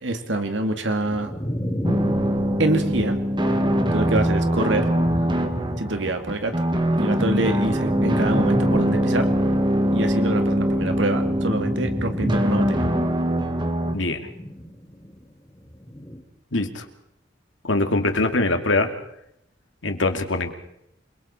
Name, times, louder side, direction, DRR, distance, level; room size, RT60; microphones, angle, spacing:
voice 1, 0.0-1.3 2.6-3.2 3.9-4.9 5.8-6.6 7.0-9.3 9.9-12.9, right 2 dB, 70° right, 6 dB, 2.2 m, -25 dB
sound 1, 1.0-6.3 6.6-15.2 15.5-16.2, equal, 15° left, 2.6 m, -32 dB
sound 2, 1.8-14.0, equal, 25° right, 1.9 m, -23 dB
voice 2, 13.9-14.3 16.5-16.9 17.6-18.9 19.8-20.5, left 2 dB, 85° left, 6 dB, 2.5 m, -23 dB
28.5 x 22.5 x 4.4 m, 0.77 s
head